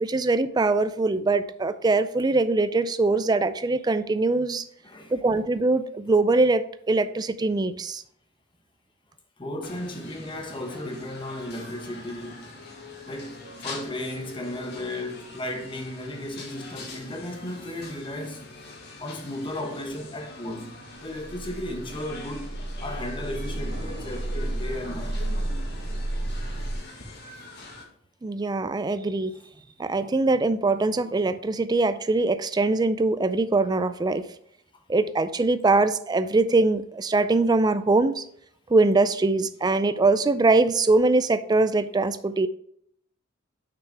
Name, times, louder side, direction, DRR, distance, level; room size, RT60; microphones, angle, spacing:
voice 1, 0.0-4.7 5.1-8.0 28.2-29.3 29.8-34.3 34.9-38.2 38.7-42.5, right 3 dB, 20° right, 0.3 m, -22 dB
voice 2, 4.8-5.2 9.4-12.6 13.1-18.4 19.0-20.8 21.0-22.5 22.8-25.2, left 1 dB, 25° left, 1.1 m, -35 dB
sound 1, 9.6-27.8, left 2 dB, 55° left, 1.7 m, -44 dB
sound 2, 21.0-26.8, right 1 dB, 70° left, 2.7 m, -32 dB
6.4 x 6.0 x 3.5 m
head